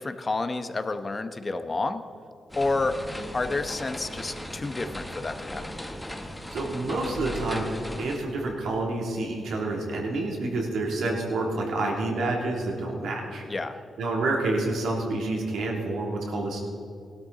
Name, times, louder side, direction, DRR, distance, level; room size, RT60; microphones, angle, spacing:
voice 1, 0.0-2.0 2.6-3.0 3.3-5.8 13.5-13.8, left 3 dB, 30° left, 9 dB, 0.9 m, -29 dB
sound 1, 2.5-8.2, left 1 dB, 5° left, 1.3 m, -37 dB
voice 2, 6.5-7.6 8.0-13.4 14.0-16.6, right 2 dB, 80° right, -1 dB, 2.7 m, -28 dB
17.5 x 12.5 x 4.0 m, 2.5 s
cardioid pair, 80°, 0 cm